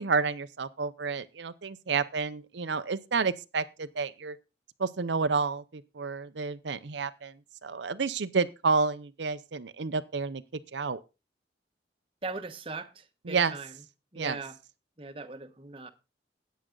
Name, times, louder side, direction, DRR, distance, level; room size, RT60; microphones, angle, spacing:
voice 1, 0.0-4.4 4.8-7.3 7.6-10.4 10.7-11.0 13.2-13.5 14.2-14.4, right 4 dB, 90° right, 0.7 m, -30 dB
voice 2, 12.2-12.9 13.3-13.7 14.1-14.5 15.0-15.9, right 3 dB, 30° right, 1.1 m, -39 dB
14.0 x 9.3 x 3.9 m
head